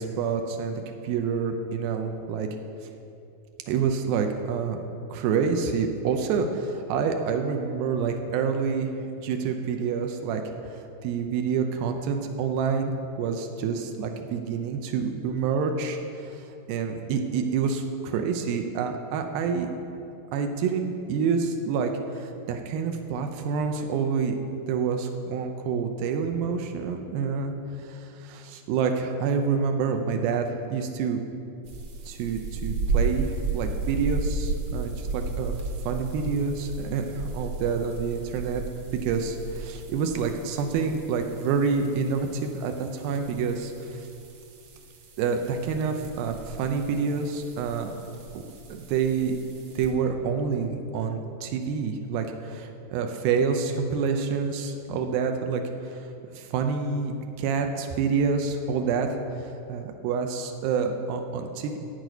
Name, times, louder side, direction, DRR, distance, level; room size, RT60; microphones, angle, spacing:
voice 1, 0.0-2.5 3.7-4.8 5.1-8.9 9.2-10.4 10.7-19.7 20.3-24.4 24.7-27.5 27.8-31.2 32.1-35.5 35.9-38.6 39.0-44.1 45.2-47.9 48.7-49.4 49.8-56.1 56.3-59.1 59.4-61.8, right 5 dB, 90° right, 5 dB, 2.6 m, -28 dB
sound 1, 31.7-49.9, right 4 dB, 65° right, 1.4 m, -34 dB
14.0 x 4.9 x 9.2 m, 2.7 s
omnidirectional pair, 4.2 m